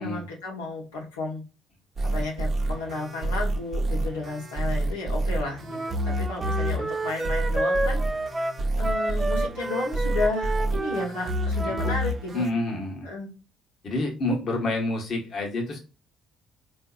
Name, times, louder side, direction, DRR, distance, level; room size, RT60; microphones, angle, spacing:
voice 1, 0.0-1.4 2.0-8.0 8.8-12.5 13.0-13.3, left 3 dB, 90° left, -3 dB, 1.0 m, -33 dB
sound 1, 2.0-12.5, right 1 dB, 40° right, 0.8 m, -28 dB
Wind instrument woodwind instrument, 5.6-12.0, right 2 dB, 20° right, 0.4 m, -30 dB
voice 2, 12.3-13.1 13.8-15.8, left 2 dB, 50° left, 1 dB, 1.1 m, -28 dB
3.6 x 2.7 x 2.3 m, 0.32 s
hypercardioid pair, 55°, 0 cm